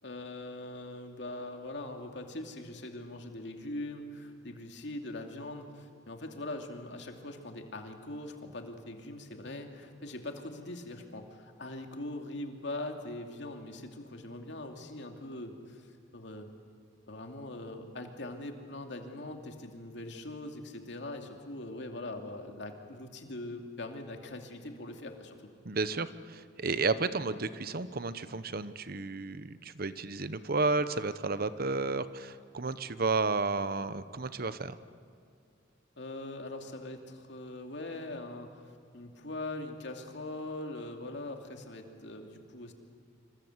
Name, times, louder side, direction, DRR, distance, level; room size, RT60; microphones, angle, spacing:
voice 1, 0.0-16.5 17.1-25.4 36.0-42.7, left 2 dB, 65° left, 4 dB, 2.7 m, -42 dB
voice 2, 25.6-34.8, right 3 dB, 50° right, 13 dB, 1.0 m, -32 dB
27.0 x 25.0 x 8.1 m, 2.3 s
head